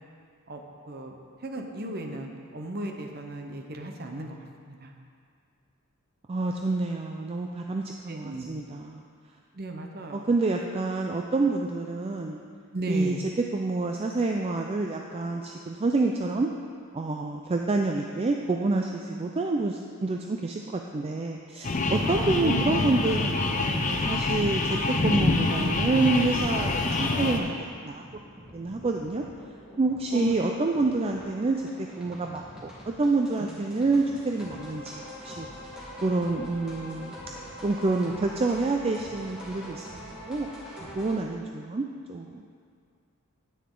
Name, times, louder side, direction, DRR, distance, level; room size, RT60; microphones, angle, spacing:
voice 1, 0.9-1.2 1.4-4.9 8.1-8.5 9.5-10.3 12.7-13.3 22.4-22.6 30.1-30.3, right 1 dB, 45° right, 3 dB, 0.8 m, -35 dB
voice 2, 6.3-9.0 10.1-12.4 12.9-13.1 13.5-16.5 16.9-28.0 28.5-29.2 29.8-37.3 37.6-40.0 40.3-40.5 41.0-42.5, right 3 dB, 25° right, 2 dB, 0.4 m, -28 dB
sound 1, 21.6-27.4, left 2 dB, 35° left, 0.6 m, -26 dB
sound 2, 27.3-41.1, equal, 5° right, 1.7 m, -44 dB
10.0 x 8.6 x 3.8 m, 2.2 s
head